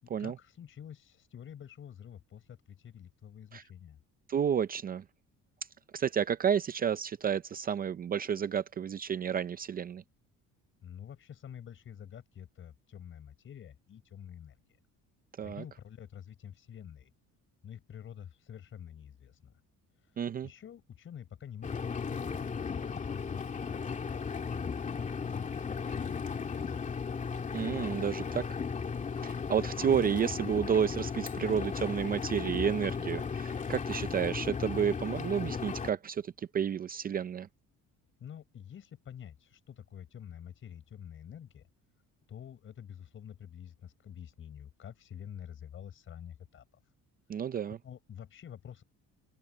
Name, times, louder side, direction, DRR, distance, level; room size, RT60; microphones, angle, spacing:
voice 1, 0.0-4.0 10.8-14.8 15.4-17.1 17.6-19.6 20.0-24.6 24.8-27.2 38.2-41.6 42.3-46.7 47.8-48.8, left 9 dB, 40° left, 4.9 m, -48 dB
voice 2, 4.3-5.0 5.9-10.0 15.4-15.6 20.2-20.5 27.5-28.5 29.2-37.5 47.3-47.8, right 8 dB, 30° right, 0.5 m, -31 dB
Engine, 21.6-35.9, left 5 dB, 25° left, 2.5 m, -36 dB
open air
cardioid pair, 155°, 32 cm